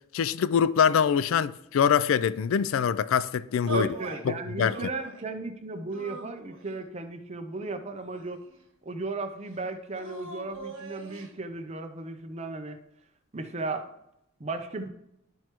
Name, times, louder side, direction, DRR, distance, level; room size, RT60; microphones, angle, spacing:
voice 1, 0.1-3.9 4.3-4.8, left 7 dB, 80° left, 0.3 m, -24 dB
voice 2, 3.7-8.4 8.9-12.8 13.3-13.9 14.4-14.9, right 3 dB, 30° right, 0.6 m, -35 dB
sound 1, 3.7-4.2 4.6-5.3 5.9-6.8 7.6-8.6 9.9-11.3, right 2 dB, 65° right, 1.3 m, -39 dB
12.5 x 4.5 x 3.0 m
head